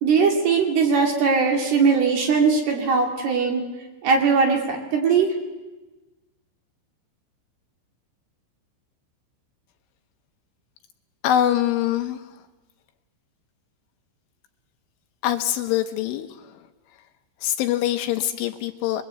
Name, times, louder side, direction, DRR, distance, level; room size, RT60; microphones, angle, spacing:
voice 1, 0.0-3.6 4.0-5.3, right 5 dB, 55° right, 1 dB, 4.3 m, -20 dB
voice 2, 11.2-12.4 15.2-16.6 17.4-19.0, left 11 dB, 75° left, 6 dB, 3.2 m, -24 dB
24.0 x 22.5 x 8.2 m, 1.2 s
omnidirectional pair, 6.0 m